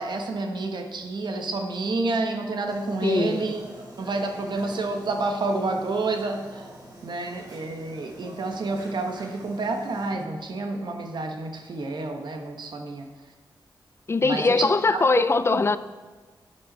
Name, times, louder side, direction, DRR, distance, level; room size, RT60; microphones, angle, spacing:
voice 1, 0.0-3.6 4.0-6.7 7.0-13.1 14.2-15.2 15.5-15.6, right 3 dB, 70° right, 1.3 m, -29 dB
sound 1, 2.7-10.1, right 1 dB, 50° right, 3.1 m, -45 dB
voice 2, 3.0-3.5 14.1-15.8, left 3 dB, 35° left, 0.4 m, -21 dB
12.0 x 8.9 x 4.2 m
wide cardioid pair, 115°, 8 cm